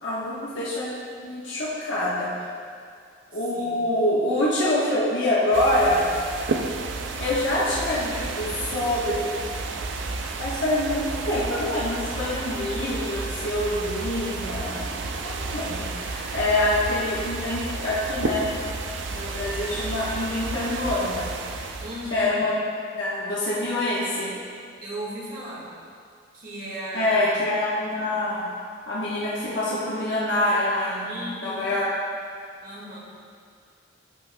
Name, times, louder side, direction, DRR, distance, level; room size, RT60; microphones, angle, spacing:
voice 1, 0.0-0.9 1.2-2.4 3.3-6.0 7.2-9.4 10.4-18.5 19.1-21.3 22.1-22.5 22.9-24.3 26.9-28.5 28.9-31.9, left 1 dB, 70° left, -8 dB, 1.2 m, -25 dB
voice 2, 3.5-3.8 21.8-22.3 24.8-25.7 26.3-27.4 31.0-31.7 32.6-33.0, equal, 45° right, -5 dB, 1.7 m, -36 dB
sound 1, 5.5-22.3, right 3 dB, 70° right, 0.5 m, -32 dB
13.0 x 5.9 x 2.3 m, 2.3 s
head